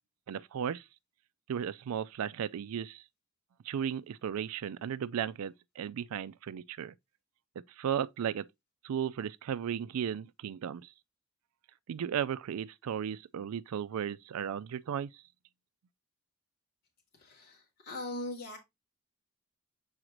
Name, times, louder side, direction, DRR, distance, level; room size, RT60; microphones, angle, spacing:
voice 1, 0.3-0.8 1.5-3.0 3.6-6.9 7.6-8.5 8.8-10.9 11.9-15.1, right 8 dB, 75° right, 0.3 m, -35 dB
voice 2, 17.1-18.6, left 1 dB, 45° left, 2.5 m, -40 dB
6.4 x 4.8 x 3.0 m
head